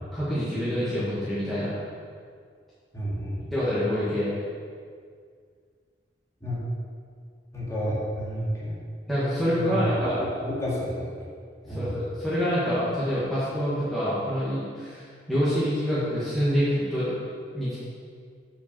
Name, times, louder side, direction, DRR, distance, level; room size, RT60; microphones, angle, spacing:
voice 1, 0.1-1.7 3.5-4.3 9.1-10.2 11.7-17.1 17.5-17.8, equal, ahead, -12 dB, 1.5 m, -26 dB
voice 2, 2.9-3.5 6.4-6.6 7.5-8.8 9.5-11.1 11.6-12.0, equal, 15° left, -7 dB, 2.1 m, -30 dB
6.7 x 5.2 x 6.6 m, 2.1 s
head